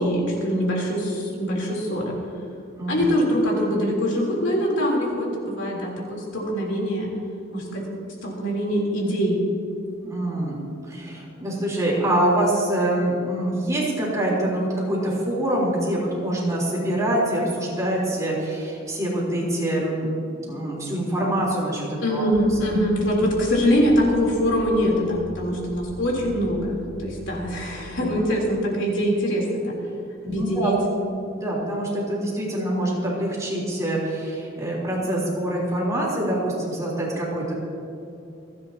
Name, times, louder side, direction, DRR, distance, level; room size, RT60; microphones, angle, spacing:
voice 1, 0.0-2.2 2.9-7.1 7.5-7.9 8.2-9.4 22.0-29.7 30.2-30.8, equal, 70° left, -3 dB, 3.5 m, -23 dB
voice 2, 10.0-10.6 10.9-20.1 20.5-22.2 27.9-28.1 30.2-30.7 31.4-37.6, right 1 dB, 15° right, -5 dB, 3.6 m, -25 dB
sound 1, 22.3-28.1, equal, 45° left, 0.9 m, -40 dB
28.0 x 10.5 x 2.9 m, 2.7 s
head